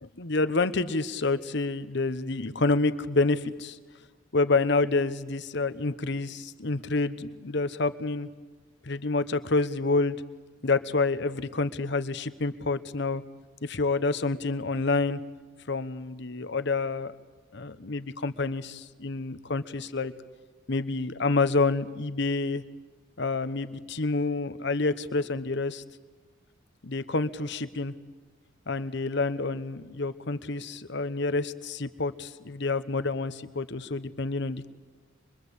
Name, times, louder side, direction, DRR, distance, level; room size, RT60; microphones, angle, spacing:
voice 1, 0.0-3.8 4.3-8.3 8.8-10.2 10.6-13.2 13.6-15.2 15.7-17.1 17.5-20.1 20.7-22.6 23.2-25.8 26.8-27.9 28.7-34.7, left 3 dB, 60° left, 13 dB, 1.1 m, -28 dB
25.0 x 23.0 x 8.3 m, 1.3 s
head